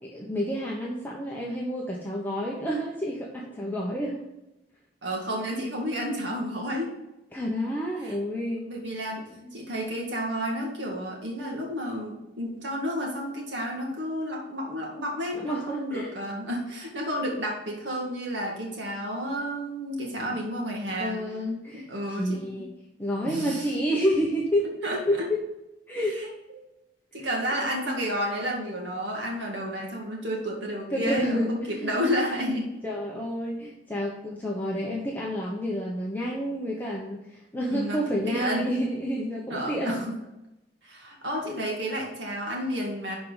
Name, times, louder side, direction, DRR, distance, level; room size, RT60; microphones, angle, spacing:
voice 1, 0.0-4.3 7.3-8.7 9.4-9.5 15.3-16.1 20.2-20.4 20.9-21.9 22.2-22.7 23.0-24.7 25.1-25.4 25.9-26.2 27.2-27.3 27.6-27.7 30.9-31.9 32.8-40.0 41.4-41.6, equal, 10° left, -4 dB, 1.1 m, -29 dB
voice 2, 5.0-6.9 8.0-8.2 8.7-9.2 9.5-21.2 21.9-22.5 23.2-23.7 24.8-25.0 26.1-26.7 27.1-32.7 37.7-38.7 39.5-40.2 40.8-43.1, equal, 80° right, -1 dB, 2.1 m, -31 dB
11.5 x 4.7 x 4.0 m, 0.93 s
head